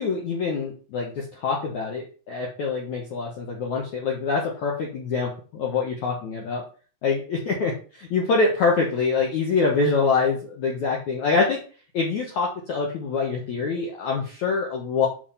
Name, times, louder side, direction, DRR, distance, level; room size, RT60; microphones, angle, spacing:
voice 1, 0.0-6.6 7.0-11.6 11.9-15.1, left 4 dB, 75° left, -1 dB, 1.7 m, -25 dB
6.8 x 5.3 x 5.7 m, 0.38 s
omnidirectional pair, 5.6 m